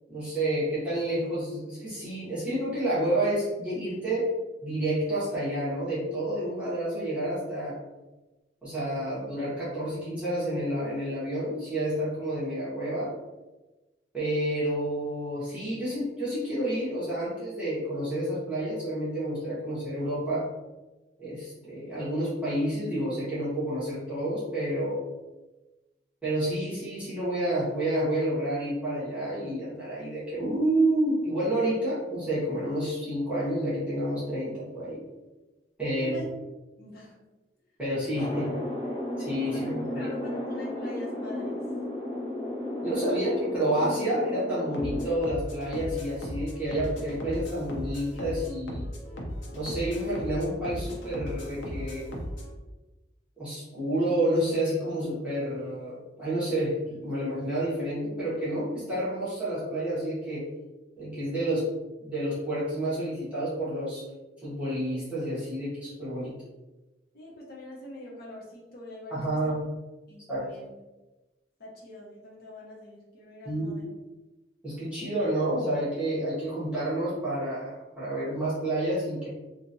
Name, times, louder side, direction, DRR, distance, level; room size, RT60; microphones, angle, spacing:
voice 1, 0.1-4.3 4.6-7.8 8.6-13.1 14.1-20.5 21.2-25.0 26.2-35.0 35.8-36.2 37.8-38.5 39.2-40.1 42.8-48.9 49.5-52.1 53.4-60.5 61.0-61.7 62.0-64.0 64.4-66.3 69.1-69.6 70.3-70.5 73.4-73.7 74.6-79.3, right 1 dB, 5° right, -12 dB, 1.2 m, -29 dB
voice 2, 35.9-36.3 36.8-37.1 39.4-41.6 67.1-69.4 70.1-70.7 71.6-73.9, left 1 dB, 55° left, -4 dB, 0.9 m, -44 dB
sound 1, 38.1-45.1, left 1 dB, 30° left, 0.5 m, -34 dB
sound 2, 44.7-52.5, equal, 85° left, 0.6 m, -37 dB
2.9 x 2.4 x 2.6 m, 1.1 s
head